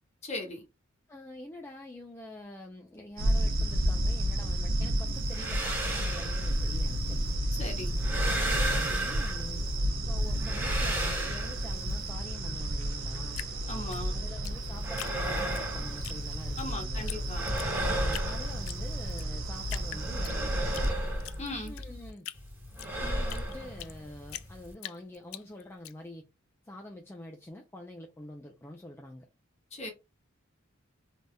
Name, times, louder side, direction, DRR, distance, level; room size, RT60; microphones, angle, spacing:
voice 1, 0.2-0.6 7.5-7.9 13.7-14.2 16.6-17.5 21.4-21.7 29.7-29.9, left 2 dB, 35° left, 1.2 m, -38 dB
voice 2, 1.1-7.2 8.3-9.6 10.1-13.4 14.1-17.3 18.0-20.9 21.6-22.3 23.0-26.2 26.6-29.3, left 1 dB, 10° left, 0.4 m, -46 dB
sound 1, 3.2-20.9, right 1 dB, 80° right, 0.8 m, -31 dB
sound 2, 5.1-7.3 7.7-9.8 10.2-12.1 14.5-16.7 16.9-19.2 19.5-22.1 22.3-24.7, right 1 dB, 10° right, 1.1 m, -35 dB
Drip, 13.3-15.6 16.0-16.7 17.1-17.2 17.5-18.3 18.7-19.3 19.7-20.9 21.2-24.0 24.3-25.9, left 14 dB, 90° left, 0.3 m, -42 dB
3.4 x 2.7 x 2.2 m
head